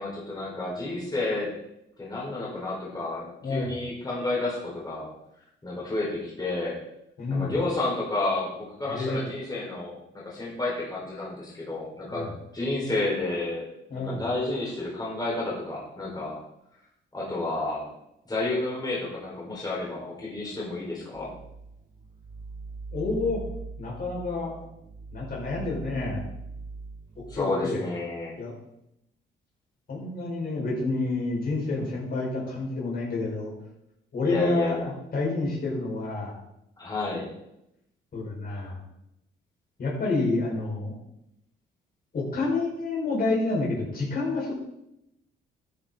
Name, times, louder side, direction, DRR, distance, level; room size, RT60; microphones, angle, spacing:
voice 1, 0.0-1.5 2.0-5.1 5.6-6.8 7.3-12.3 12.5-13.7 13.9-16.4 17.1-17.9 18.3-21.3 27.3-28.4 34.2-34.9 36.8-37.3, left 2 dB, 20° left, -5 dB, 4.6 m, -31 dB
voice 2, 3.4-3.7 7.2-7.5 8.8-9.2 12.1-12.3 13.9-14.2 22.9-23.4 23.8-24.5 25.1-26.2 27.3-27.8 28.4-28.5 29.9-33.5 34.1-34.8 35.1-36.4 38.1-38.8 39.8-40.9 42.1-44.5, left 3 dB, 50° left, -4 dB, 5.0 m, -28 dB
sound 1, 21.1-27.4, right 3 dB, 40° right, 1.4 m, -41 dB
13.5 x 7.7 x 3.9 m, 0.83 s
cardioid pair, 90°, 20 cm